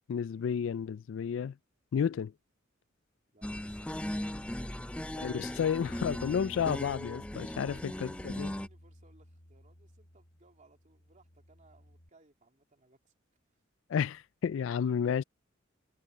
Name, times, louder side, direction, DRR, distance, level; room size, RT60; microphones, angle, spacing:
voice 1, 0.1-1.6 1.9-2.3 5.2-7.8 8.0-8.5 13.9-15.2, left 7 dB, 70° left, 0.3 m, -31 dB
voice 2, 3.3-5.2 7.3-13.1, right 2 dB, 40° right, 2.9 m, -63 dB
sound 1, 3.4-8.7, left 1 dB, 5° left, 0.4 m, -38 dB
Bass guitar, 5.8-12.1, equal, 45° left, 2.2 m, -53 dB
head